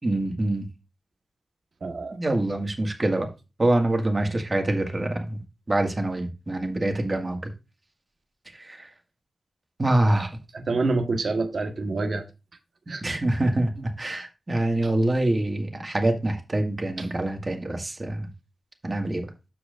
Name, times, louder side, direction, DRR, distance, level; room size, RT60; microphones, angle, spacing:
voice 1, 0.0-0.7 2.1-3.3 3.6-7.4 8.5-8.9 9.8-10.3 13.0-18.3 18.8-19.3, right 1 dB, 30° right, 2.0 m, -25 dB
voice 2, 1.8-2.2 10.5-12.2 12.9-13.0 17.0-17.1, right 3 dB, 65° right, 1.4 m, -27 dB
13.5 x 4.8 x 2.6 m
wide cardioid pair, 80°, 0 cm